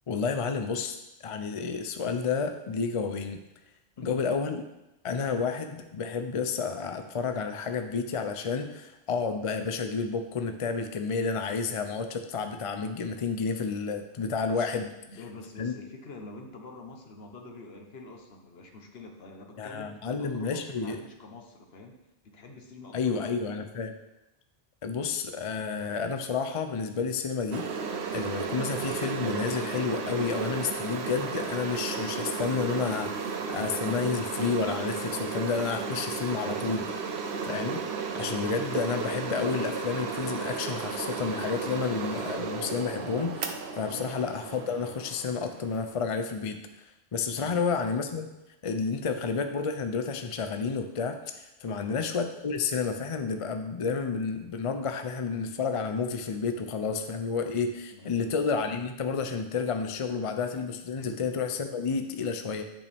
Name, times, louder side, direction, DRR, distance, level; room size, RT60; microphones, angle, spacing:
voice 1, 0.1-1.0 1.2-3.4 4.0-4.6 5.0-14.9 15.6-15.7 19.6-21.0 22.9-23.9 24.8-27.7 28.1-37.1 37.4-37.8 38.1-46.8 47.1-48.3 48.6-62.6, left 5 dB, 45° left, 7 dB, 0.5 m, -30 dB
voice 2, 4.0-4.3 14.5-22.0 22.2-23.5 43.9-44.2 47.4-47.7 51.6-52.0 57.9-58.3 61.0-61.2, left 3 dB, 60° left, 3 dB, 1.3 m, -46 dB
sound 1, 27.5-46.0, right 5 dB, 70° right, 1.0 m, -34 dB
9.5 x 5.4 x 3.5 m, 0.95 s
omnidirectional pair, 1.2 m